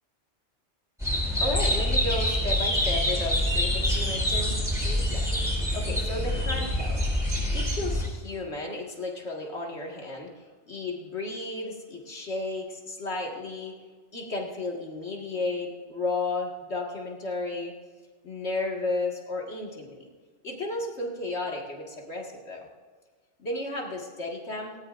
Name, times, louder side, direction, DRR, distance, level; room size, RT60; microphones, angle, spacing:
sound 1, 1.0-8.1, left 1 dB, ahead, 5.3 m, -26 dB
voice 1, 1.4-13.8 14.1-17.7 18.2-20.1 20.4-22.7 23.4-24.8, left 2 dB, 70° left, -1 dB, 2.3 m, -33 dB
18.5 x 17.5 x 2.6 m, 1.5 s
omnidirectional pair, 1.2 m